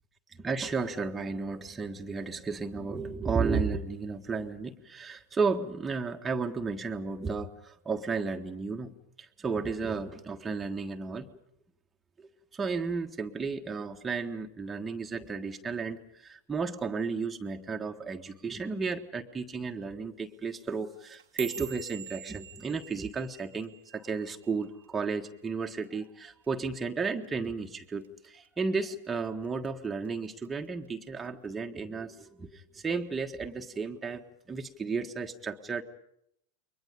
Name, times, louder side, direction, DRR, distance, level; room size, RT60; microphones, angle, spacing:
voice 1, 0.4-11.3 12.2-35.8, right 4 dB, 15° right, 4 dB, 1.5 m, -33 dB
sound 1, 20.9-25.4 25.6-26.1 26.4-26.9 27.2-27.5 28.0-28.5 28.8-29.7 30.0-30.5 31.3-31.4, right 9 dB, 65° right, 1.0 m, -45 dB
29.5 x 23.5 x 5.3 m, 0.77 s
figure-of-eight pair, 90°, 0 cm